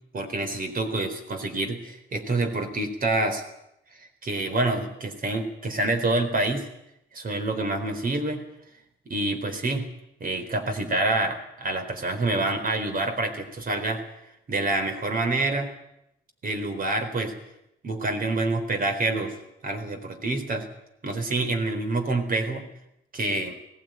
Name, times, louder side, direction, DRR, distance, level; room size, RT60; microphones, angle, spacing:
voice 1, 0.1-3.4 4.0-6.7 7.1-8.4 9.1-9.8 10.2-14.0 14.5-15.7 16.4-17.3 17.8-20.7 21.0-22.6 23.1-23.6, right 2 dB, 45° right, 7 dB, 4.1 m, -27 dB
18.5 x 15.5 x 9.3 m, 0.81 s
cardioid pair, 90°, 20 cm